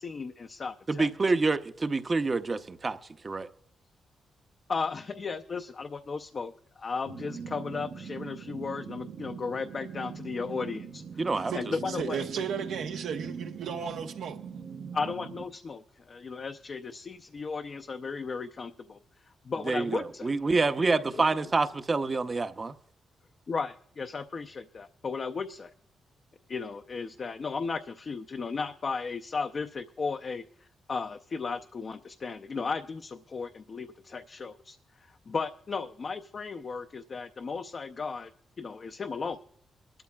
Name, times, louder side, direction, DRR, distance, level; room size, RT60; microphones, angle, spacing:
voice 1, 0.0-1.1 4.7-11.2 11.5-12.2 12.5-12.6 14.9-15.8 16.1-19.0 19.4-20.3 23.5-25.7 26.5-38.3 38.6-39.4, left 4 dB, 45° left, 0.5 m, -35 dB
voice 2, 0.9-3.0 3.2-3.5 11.2-11.5 19.7-22.7, right 3 dB, 30° right, 0.7 m, -27 dB
sound 1, 7.0-15.5, right 6 dB, 70° right, 0.9 m, -42 dB
voice 3, 11.5-14.4, right 7 dB, 90° right, 1.1 m, -34 dB
22.5 x 12.5 x 2.3 m
cardioid pair, 105°, 0 cm